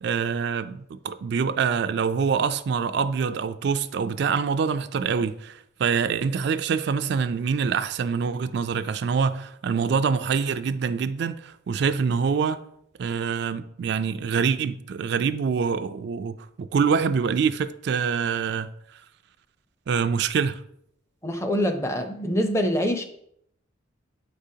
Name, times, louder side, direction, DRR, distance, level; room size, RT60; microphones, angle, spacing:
voice 1, 0.0-12.6 13.0-19.0 19.9-20.6, right 6 dB, 55° right, 0.3 m, -25 dB
voice 2, 21.2-23.1, equal, 15° left, 0.5 m, -25 dB
8.2 x 5.0 x 2.7 m
head